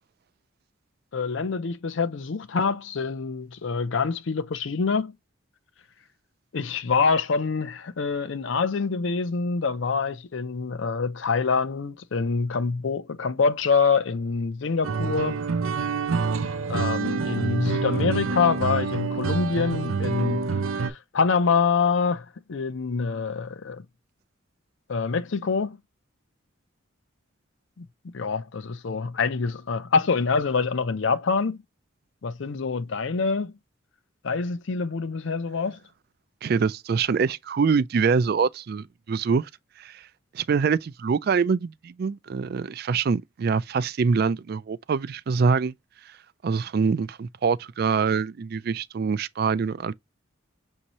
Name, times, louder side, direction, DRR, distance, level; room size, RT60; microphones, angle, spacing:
voice 1, 1.1-5.1 6.5-15.4 16.7-23.8 24.9-25.8 27.8-27.9 28.1-31.6 32.2-33.5 34.2-35.8, left 5 dB, 65° left, 0.5 m, -25 dB
sound 1, 14.8-20.9, right 5 dB, 85° right, 0.6 m, -27 dB
voice 2, 36.4-39.5 39.8-40.0 40.3-45.7 46.4-49.9, right 5 dB, 50° right, 0.3 m, -24 dB
6.3 x 2.7 x 2.9 m
head